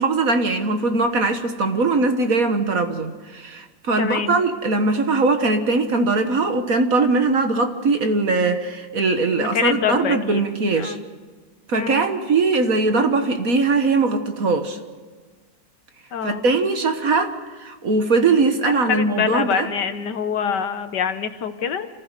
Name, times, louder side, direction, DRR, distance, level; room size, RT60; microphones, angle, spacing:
voice 1, 0.0-11.0 11.7-14.8 16.2-19.7, right 3 dB, 50° right, 7 dB, 1.7 m, -21 dB
voice 2, 4.0-4.3 9.3-10.4 10.7-11.0 11.7-12.1 16.1-16.4 18.9-21.9, left 7 dB, 65° left, 9 dB, 1.6 m, -25 dB
28.0 x 15.5 x 6.7 m, 1.4 s
omnidirectional pair, 2.0 m